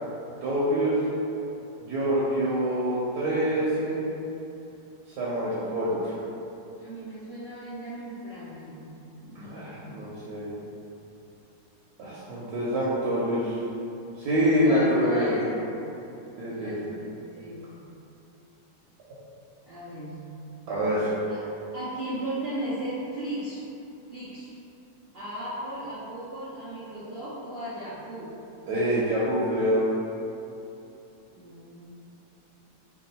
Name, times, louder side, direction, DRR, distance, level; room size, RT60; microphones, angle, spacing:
voice 1, 0.4-0.9 1.8-4.1 5.2-6.1 9.4-10.5 12.0-13.6 14.2-15.3 16.4-16.9 20.7-21.2 28.7-29.9, equal, 70° right, -8 dB, 1.1 m, -26 dB
voice 2, 6.8-8.9 9.2-9.7 14.6-15.6 16.5-17.7 19.7-20.2 21.3-23.6 24.1-24.5 25.1-28.4 31.3-31.8, right 1 dB, 85° right, -12 dB, 0.5 m, -36 dB
3.4 x 2.2 x 4.1 m, 2.8 s
omnidirectional pair, 2.0 m